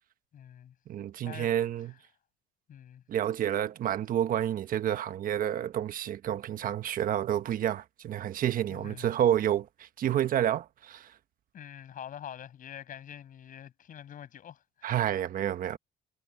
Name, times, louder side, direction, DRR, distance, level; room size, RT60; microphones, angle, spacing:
voice 1, 0.3-0.7 1.2-1.5 2.7-3.0 8.7-9.1 11.5-15.0, left 9 dB, 55° left, 6.4 m, -45 dB
voice 2, 0.9-1.9 3.1-11.1 14.8-15.8, right 11 dB, 55° right, 1.3 m, -29 dB
cardioid pair, 110°, 17 cm